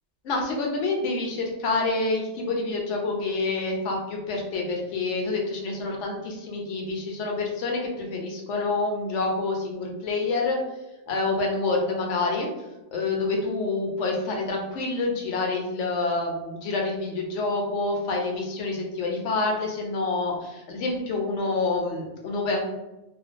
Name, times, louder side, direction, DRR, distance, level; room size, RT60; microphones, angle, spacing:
voice 1, 0.2-10.6 11.1-12.5 12.9-22.6, left 3 dB, 70° left, 0 dB, 0.9 m, -27 dB
2.5 x 2.2 x 2.4 m, 1.0 s
omnidirectional pair, 1.4 m